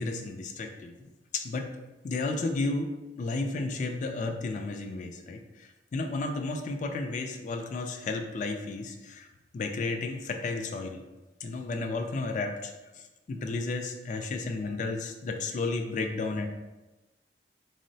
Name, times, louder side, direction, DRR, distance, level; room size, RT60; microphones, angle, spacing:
voice 1, 0.0-1.7 2.0-2.9 3.2-9.3 9.5-11.0 11.4-16.5, left 3 dB, 45° left, 5 dB, 0.3 m, -33 dB
3.6 x 2.0 x 2.6 m, 1.1 s
head